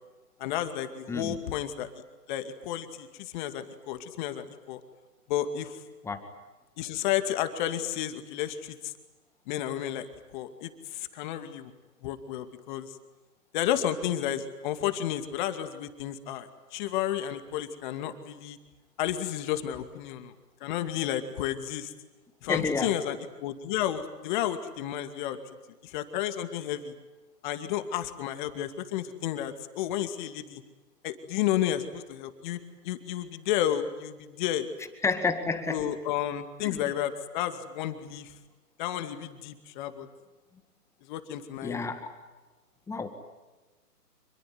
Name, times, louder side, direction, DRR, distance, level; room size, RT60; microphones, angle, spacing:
voice 1, 0.4-1.9 2.3-4.8 5.3-5.8 6.8-8.9 9.5-10.1 10.3-11.7 12.0-12.9 13.5-18.6 19.0-20.3 20.6-21.9 22.4-25.4 25.8-26.9 27.4-30.6 31.0-32.6 32.8-34.7 35.7-38.3 38.8-40.1 41.1-41.8, left 11 dB, 30° left, 9 dB, 2.4 m, -32 dB
voice 2, 22.5-22.9 35.0-35.8 36.6-36.8 41.6-42.1 42.9-43.1, left 4 dB, 5° left, 8 dB, 1.8 m, -30 dB
27.0 x 21.5 x 9.5 m, 1.2 s
hypercardioid pair, 140°, 47 cm